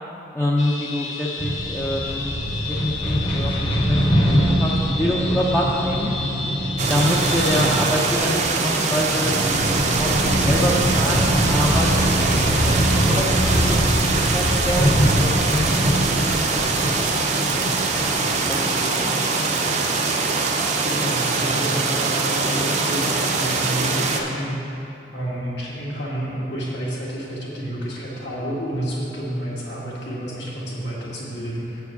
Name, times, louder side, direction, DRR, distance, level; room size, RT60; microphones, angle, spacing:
voice 1, 0.3-6.1 6.9-13.8 14.0-18.2 18.5-19.3, equal, 10° left, -5 dB, 0.5 m, -27 dB
sound 1, 0.6-7.8, left 4 dB, 85° left, 1.0 m, -32 dB
sound 2, 1.4-18.9, equal, 25° left, 0.9 m, -23 dB
sound 3, 6.8-24.2, right 3 dB, 40° right, 0.6 m, -23 dB
voice 2, 20.8-24.6 25.1-31.8, equal, 70° left, -6 dB, 2.0 m, -29 dB
7.6 x 4.5 x 6.9 m, 2.9 s
head